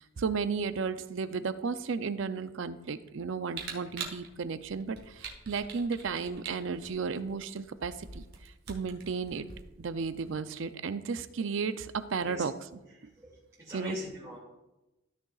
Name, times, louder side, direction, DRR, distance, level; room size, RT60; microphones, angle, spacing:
voice 1, 0.0-9.5 9.8-12.5 13.7-14.0, right 5 dB, 65° right, 12 dB, 0.5 m, -34 dB
Camera, 3.5-10.3, right 5 dB, 50° right, 1.3 m, -45 dB
voice 2, 13.6-14.4, left 1 dB, 15° right, -9 dB, 2.2 m, -40 dB
14.0 x 6.5 x 2.4 m, 0.99 s
head